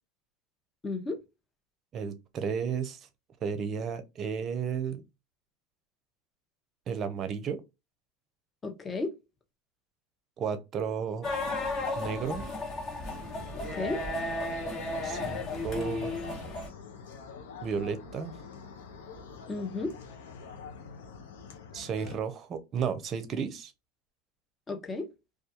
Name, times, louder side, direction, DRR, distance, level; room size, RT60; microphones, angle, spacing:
voice 1, 0.8-1.2 8.6-9.1 13.7-14.0 19.5-20.0 24.7-25.1, left 3 dB, 20° left, 0.7 m, -33 dB
voice 2, 1.9-3.1 3.4-5.0 6.9-7.6 10.4-11.3 12.0-12.5 15.0-16.2 17.6-18.3 21.7-23.7, right 6 dB, 40° right, 0.6 m, -33 dB
sound 1, 11.2-16.7, left 2 dB, 40° left, 1.1 m, -34 dB
sound 2, 13.0-22.1, left 6 dB, 85° left, 0.6 m, -46 dB
2.3 x 2.2 x 2.8 m
hypercardioid pair, 100°, 0 cm